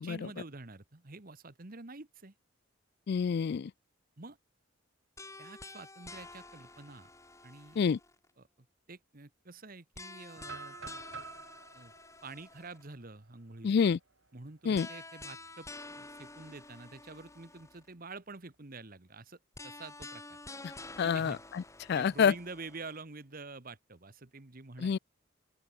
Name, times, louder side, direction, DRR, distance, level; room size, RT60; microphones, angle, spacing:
voice 1, 0.0-2.3 4.2-4.4 5.4-7.1 7.4-7.8 8.4-11.0 11.7-11.9 12.2-13.7 14.3-20.4 21.0-21.4 21.9-25.0, right 3 dB, 45° right, 1.4 m, -48 dB
voice 2, 3.1-3.7 7.8-8.0 13.6-14.0 14.7-14.9 21.0-21.4 21.9-22.3 24.8-25.0, left 6 dB, 50° left, 0.3 m, -27 dB
sound 1, 5.2-8.3 9.9-12.9 14.7-17.9 19.5-23.0, left 2 dB, 15° left, 5.0 m, -49 dB
sound 2, 10.4-14.3 14.7-14.8 15.3-15.6 16.9-17.8, right 5 dB, 70° right, 5.2 m, -50 dB
open air
head